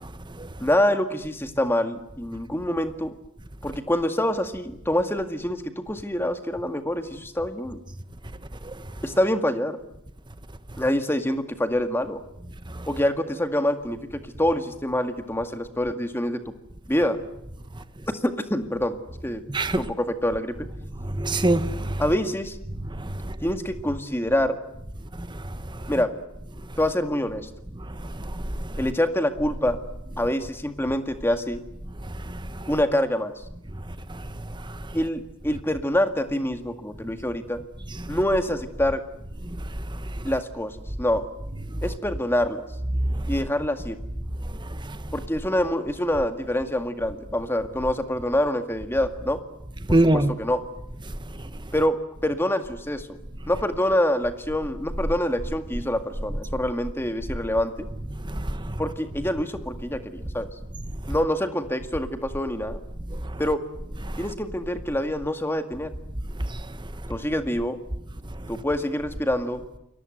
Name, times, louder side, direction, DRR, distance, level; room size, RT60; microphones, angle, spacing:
voice 1, 0.6-3.2 3.6-7.8 9.0-9.8 10.8-12.2 12.9-16.4 16.9-17.2 18.2-18.9 19.2-19.4 19.7-20.6 22.0-22.6 23.4-24.6 25.9-26.1 26.8-27.5 28.8-29.8 30.2-31.6 32.7-33.4 34.9-37.6 38.1-39.0 40.2-41.3 41.8-42.6 43.3-44.0 45.1-49.4 49.9-50.6 51.7-52.0 52.2-53.1 53.5-57.9 58.8-60.5 61.1-62.8 63.4-63.6 64.2-65.9 67.1-67.8 68.5-69.6, left 1 dB, 10° left, 2.0 m, -26 dB
voice 2, 19.5-19.8 21.0-22.1 23.0-23.1 28.2-28.4 32.3-32.4 37.9-38.1 44.9-45.0 49.9-50.3 58.3-58.7, right 1 dB, 20° right, 1.3 m, -23 dB
29.0 x 23.0 x 7.9 m
head